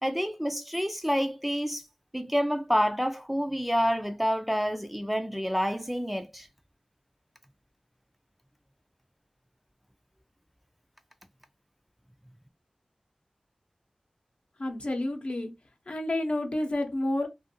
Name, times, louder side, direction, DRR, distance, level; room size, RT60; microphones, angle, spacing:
voice 1, 0.0-1.8 2.1-6.5, equal, 5° right, 0.4 m, -28 dB
voice 2, 14.6-15.5 15.9-17.3, left 1 dB, 60° left, 0.8 m, -29 dB
2.5 x 2.5 x 2.7 m
cardioid pair, 40°, 2 cm